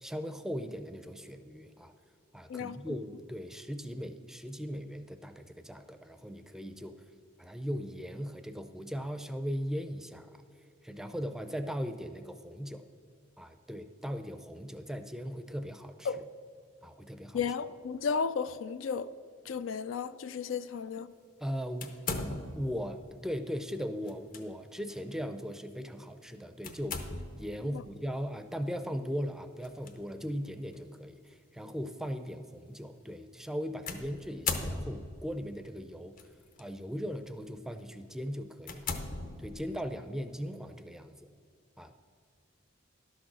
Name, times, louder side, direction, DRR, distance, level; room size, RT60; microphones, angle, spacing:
voice 1, 0.0-1.9 2.3-6.9 7.4-10.4 10.8-12.8 13.4-16.2 16.8-17.6 21.4-21.9 22.5-36.2 36.6-38.9 39.4-41.3 41.8-41.9, equal, 5° right, 0.4 m, -38 dB
voice 2, 2.5-2.9 16.1-16.2 17.3-19.1 19.5-21.1 27.7-27.8, left 6 dB, 85° left, 0.4 m, -34 dB
sound 1, 21.8-22.8 24.1-24.4 24.9-25.0 26.6-27.5 29.6-29.9 30.7-30.8 33.9-35.3 36.2-36.6 37.2-37.4 37.9-38.0 38.6-39.8, left 3 dB, 45° left, 0.8 m, -37 dB
11.5 x 6.4 x 6.0 m
head